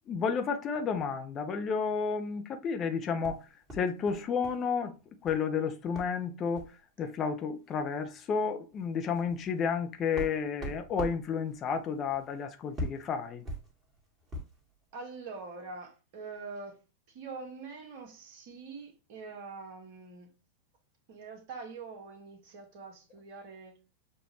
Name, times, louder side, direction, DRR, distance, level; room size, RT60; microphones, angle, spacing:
voice 1, 0.1-3.5 3.7-4.9 5.2-6.7 7.0-13.4, left 6 dB, 30° left, 0.7 m, -31 dB
sound 1, 3.2-4.6 4.9-5.5 5.9-6.2 6.5-6.8 7.7-7.8 8.1-8.3 8.8-14.6, right 1 dB, 20° right, 1.8 m, -42 dB
voice 2, 14.9-16.8 17.1-20.3 21.1-23.8, right 4 dB, 45° right, 1.3 m, -44 dB
6.7 x 2.5 x 3.1 m
figure-of-eight pair, 90°, 0 cm